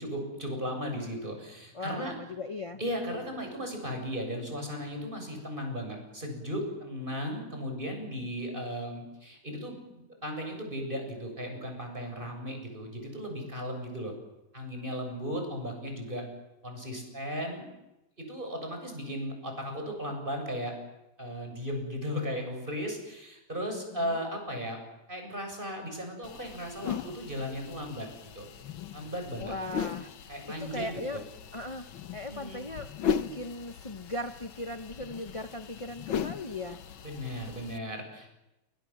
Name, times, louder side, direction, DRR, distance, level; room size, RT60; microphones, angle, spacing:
voice 1, 0.0-2.2 2.8-14.1 14.5-16.2 16.6-17.7 18.2-20.7 21.2-24.8 25.1-28.1 28.4-28.5 28.9-29.5 30.3-31.2 32.3-32.6 37.0-38.4, equal, 25° right, 3 dB, 7.9 m, -36 dB
voice 2, 1.7-2.8 23.7-24.2 29.4-30.3 30.6-31.2 31.5-36.8, left 2 dB, 35° left, 7 dB, 0.5 m, -38 dB
sound 1, 26.2-37.8, left 7 dB, 80° left, 2.0 m, -38 dB
29.0 x 25.5 x 7.5 m, 0.93 s
omnidirectional pair, 2.2 m